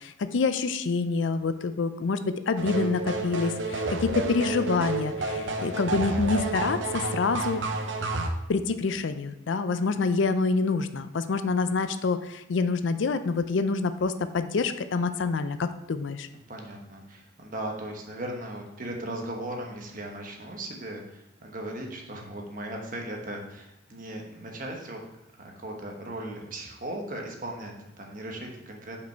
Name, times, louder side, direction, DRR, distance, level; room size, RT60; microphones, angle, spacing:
voice 1, 0.0-7.6 8.5-16.3, left 4 dB, 65° left, 11 dB, 0.4 m, -27 dB
sound 1, 2.6-8.3, right 2 dB, 65° right, 0.7 m, -30 dB
voice 2, 16.5-25.0 25.4-29.0, right 1 dB, 40° right, 1 dB, 1.1 m, -37 dB
5.7 x 5.1 x 4.5 m, 0.88 s
head